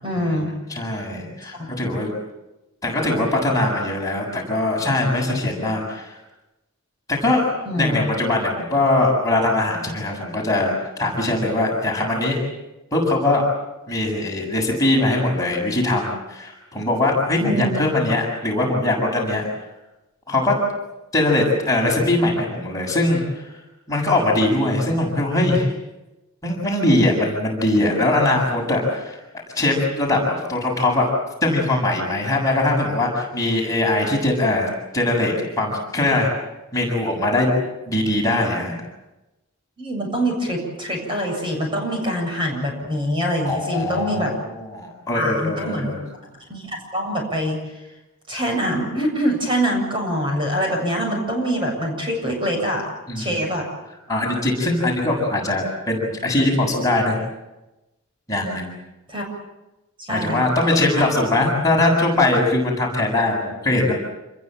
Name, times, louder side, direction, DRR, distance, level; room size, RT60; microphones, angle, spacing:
voice 1, 0.0-0.5 1.6-1.7 7.7-8.0 17.4-17.7 39.8-44.3 45.1-46.0 46.5-47.6 48.3-52.8 53.2-53.6 54.6-54.8 59.1-59.2 60.0-60.5, equal, 25° right, 0 dB, 7.7 m, -24 dB
voice 2, 0.7-2.1 2.8-6.1 7.1-7.4 7.8-10.7 11.0-12.4 12.9-13.4 13.9-19.4 20.3-20.5 21.1-23.5 23.9-25.7 26.4-29.2 29.5-31.1 31.4-34.7 34.9-36.3 36.7-37.5 37.9-38.7 43.4-44.3 44.5-46.0 53.1-53.4 54.1-57.1 58.3-58.7 60.1-63.9, left 2 dB, 15° left, -2 dB, 6.9 m, -21 dB
28.5 x 21.5 x 7.6 m, 1.0 s
head